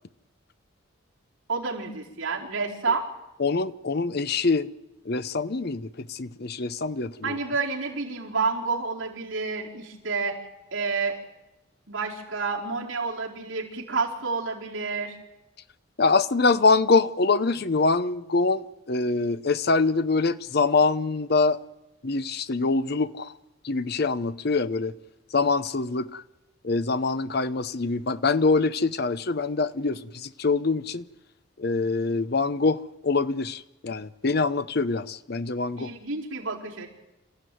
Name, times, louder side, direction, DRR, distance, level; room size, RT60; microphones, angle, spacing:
voice 1, 1.5-3.1 7.2-10.4 10.7-11.2 11.9-15.2 35.8-36.9, right 4 dB, 65° right, 4.5 m, -29 dB
voice 2, 3.4-4.7 5.1-7.4 16.0-21.6 22.0-23.3 23.6-24.9 25.3-26.2 26.6-31.0 31.6-35.9, left 3 dB, 50° left, 0.7 m, -24 dB
27.5 x 15.0 x 9.3 m
head